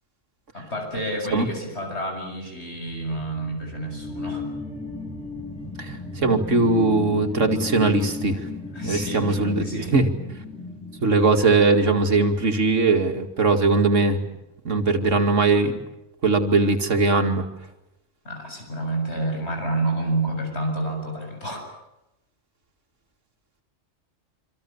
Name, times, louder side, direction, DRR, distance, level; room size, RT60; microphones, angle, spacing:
voice 1, 0.5-4.4 8.7-10.0 18.2-21.7, right 2 dB, 60° left, 3 dB, 7.6 m, -29 dB
sound 1, 2.7-12.0, left 3 dB, 5° left, 5.5 m, -34 dB
voice 2, 5.8-8.4 8.8-10.1 11.0-14.2 14.6-15.8 16.2-17.4, right 3 dB, 85° right, 4 dB, 2.6 m, -20 dB
27.0 x 26.5 x 7.2 m, 0.92 s
omnidirectional pair, 1.2 m